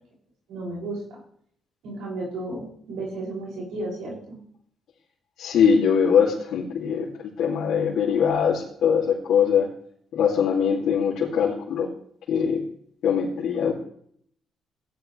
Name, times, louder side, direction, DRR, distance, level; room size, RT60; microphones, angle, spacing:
voice 1, 0.5-1.2 1.8-4.4, right 2 dB, 90° right, -3 dB, 6.5 m, -33 dB
voice 2, 5.4-7.1 7.4-9.7 10.1-11.9 12.3-12.6 13.0-13.7, left 7 dB, 75° left, -6 dB, 2.5 m, -22 dB
15.5 x 10.0 x 3.3 m, 0.63 s
cardioid pair, 90°, 0 cm